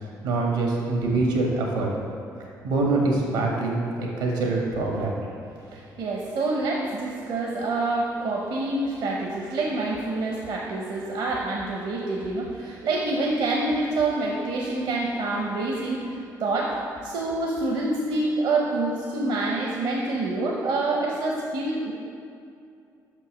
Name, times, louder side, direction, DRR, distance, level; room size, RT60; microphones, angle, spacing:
voice 1, 0.0-1.9 2.6-5.1, right 3 dB, 85° right, -1 dB, 1.5 m, -24 dB
voice 2, 5.7-16.8 17.0-21.9, right 2 dB, 65° right, -1 dB, 0.9 m, -27 dB
6.0 x 5.4 x 6.2 m, 2.5 s
hypercardioid pair, 50°, 9 cm